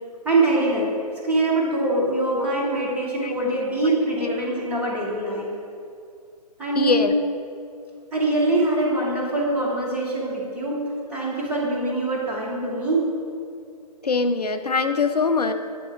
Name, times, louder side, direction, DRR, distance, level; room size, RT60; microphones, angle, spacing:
voice 1, 0.2-0.9 1.2-5.5 6.6-7.0 8.1-10.8 11.1-13.0, right 2 dB, 5° right, -6 dB, 1.1 m, -23 dB
voice 2, 6.8-7.4 14.0-15.5, left 4 dB, 65° left, 7 dB, 0.6 m, -22 dB
10.0 x 4.1 x 5.7 m, 2.4 s
figure-of-eight pair, 135°, 21 cm